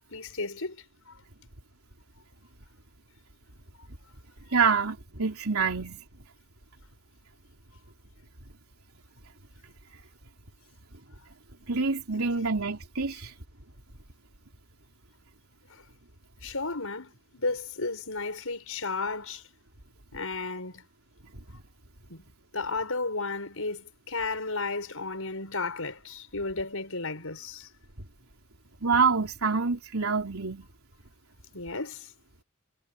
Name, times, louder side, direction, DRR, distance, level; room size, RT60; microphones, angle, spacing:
voice 1, 0.1-0.8 16.4-19.4 20.1-20.8 22.1-22.2 22.5-27.7 31.5-32.1, left 3 dB, 70° left, 7.0 m, -33 dB
voice 2, 4.5-6.0 11.7-13.3 28.8-30.7, right 5 dB, 75° right, 3.5 m, -26 dB
head